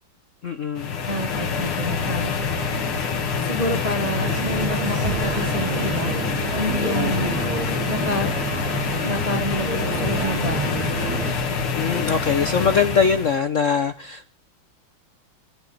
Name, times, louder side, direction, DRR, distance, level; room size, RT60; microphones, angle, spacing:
voice 1, 0.4-0.9 6.8-7.3 11.7-14.3, left 6 dB, 55° left, 9 dB, 0.8 m, -22 dB
sound 1, 0.8-13.4, left 5 dB, 75° left, 2.5 m, -26 dB
voice 2, 1.1-2.3 3.4-6.1 6.6-7.3 7.9-8.3 9.0-10.9, equal, 25° right, 6 dB, 0.9 m, -28 dB
sound 2, 4.0-11.3, right 5 dB, 70° right, 3.3 m, -29 dB
29.0 x 10.5 x 4.0 m, 0.38 s
omnidirectional pair, 2.3 m